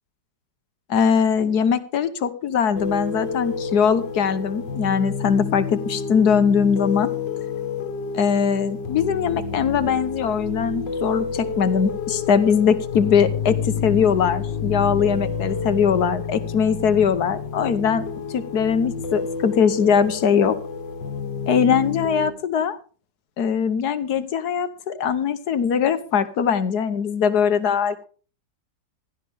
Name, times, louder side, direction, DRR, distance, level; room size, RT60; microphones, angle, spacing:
voice 1, 0.9-7.1 8.1-20.6 21.5-22.8 23.4-28.1, left 7 dB, 65° left, 11 dB, 1.5 m, -21 dB
sound 1, 2.7-22.3, left 5 dB, 85° left, 2.0 m, -29 dB
16.0 x 12.0 x 3.5 m, 0.37 s
omnidirectional pair, 1.9 m